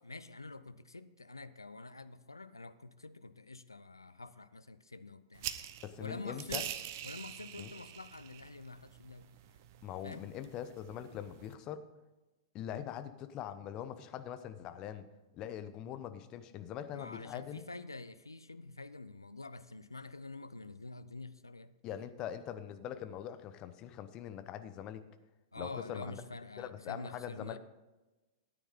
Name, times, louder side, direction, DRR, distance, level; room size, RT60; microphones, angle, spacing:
voice 1, 0.0-5.6 6.0-6.7 7.0-9.3 10.0-10.3 16.9-21.7 25.5-27.6, left 3 dB, 85° left, 13 dB, 0.5 m, -47 dB
sound 1, 5.4-11.5, right 11 dB, 45° right, 0.7 m, -45 dB
voice 2, 5.8-6.6 7.6-7.7 9.8-11.8 12.5-15.1 15.3-17.6 21.8-25.0 25.6-26.2 26.6-27.6, left 10 dB, 30° left, 11 dB, 0.9 m, -42 dB
13.5 x 9.3 x 3.7 m, 1.1 s
figure-of-eight pair, 100°, 2 cm